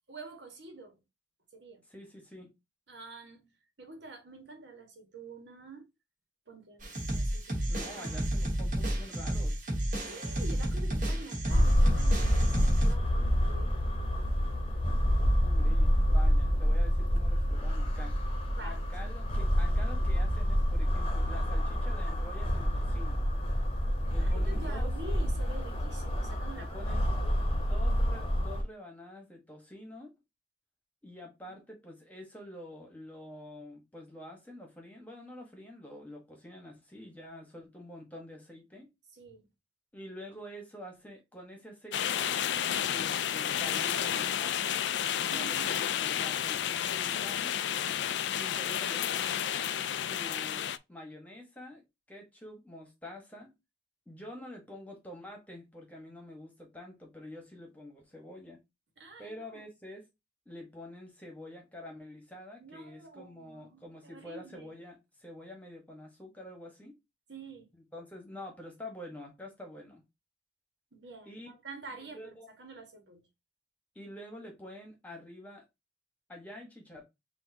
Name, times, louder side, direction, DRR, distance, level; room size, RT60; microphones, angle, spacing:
voice 1, 0.1-1.0 1.5-1.8 2.9-3.4 3.8-5.8 6.5-6.8 7.1-7.5 7.9-8.2 10.1-14.1 15.1-15.3 18.5-19.3 24.2-27.5 31.4-31.5 39.1-39.5 45.3-45.7 59.0-59.6 62.6-64.7 67.3-67.7 70.9-73.3, right 2 dB, 80° right, 1.5 m, -48 dB
voice 2, 1.9-2.6 7.7-9.6 15.4-18.2 18.6-23.2 24.1-24.9 26.5-27.1 27.4-30.1 31.0-38.9 39.9-42.3 42.9-44.7 45.2-47.5 48.4-49.4 50.0-51.8 52.1-53.5 54.1-58.6 59.2-60.0 60.4-66.9 67.9-70.0 71.2-71.5 72.1-72.5 73.9-75.6 76.3-77.0, left 1 dB, 10° left, 1.2 m, -47 dB
sound 1, 6.8-12.9, right 1 dB, 45° right, 1.4 m, -32 dB
sound 2, 11.5-28.6, equal, 30° left, 0.9 m, -28 dB
sound 3, 41.9-50.8, left 10 dB, 80° left, 0.3 m, -31 dB
6.3 x 2.7 x 2.7 m
head